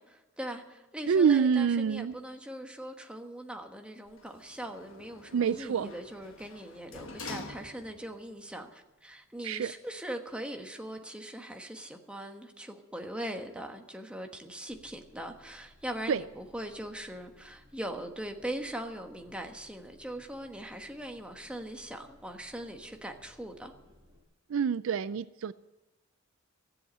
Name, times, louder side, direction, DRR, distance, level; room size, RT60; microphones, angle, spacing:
voice 1, 0.0-23.7, right 1 dB, 5° right, 3 dB, 1.3 m, -41 dB
voice 2, 1.1-2.2 5.3-5.9 9.4-9.7 16.1-16.2 24.5-25.5, right 6 dB, 65° right, 16 dB, 0.4 m, -26 dB
Sliding door, 4.1-8.2 8.6-8.7, left 3 dB, 65° left, 1.3 m, -46 dB
sound 1, 14.7-24.2, equal, 20° right, 5.4 m, -61 dB
14.5 x 8.0 x 8.8 m, 1.1 s
head